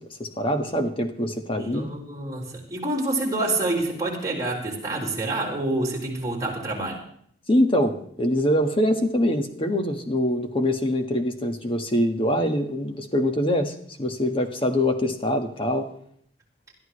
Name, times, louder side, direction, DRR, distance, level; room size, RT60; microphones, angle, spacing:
voice 1, 0.2-1.9 7.5-13.7 14.0-15.9, left 1 dB, 30° left, 5 dB, 1.7 m, -24 dB
voice 2, 1.6-7.0, right 2 dB, 20° right, -4 dB, 4.9 m, -27 dB
21.5 x 13.0 x 3.3 m, 0.63 s
head